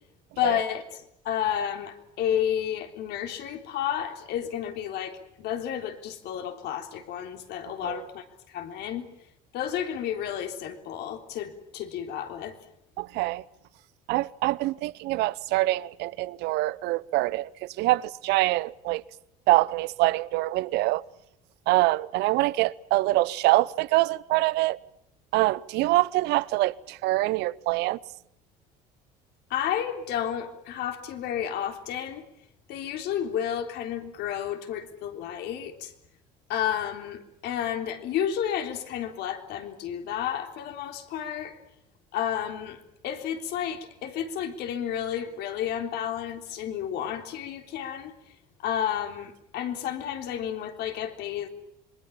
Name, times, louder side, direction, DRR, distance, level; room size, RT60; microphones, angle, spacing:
voice 1, 0.4-1.0 1.2-9.1 9.5-12.6 29.5-32.2 32.7-35.9 36.5-41.6 42.1-48.1 48.6-51.5, left 9 dB, 65° left, 3.8 m, -31 dB
voice 2, 13.0-13.4 14.1-19.0 19.5-21.0 21.7-24.8 25.3-28.0, right 18 dB, 70° right, 0.9 m, -25 dB
26.5 x 21.5 x 7.3 m
supercardioid pair, 80°, 18 cm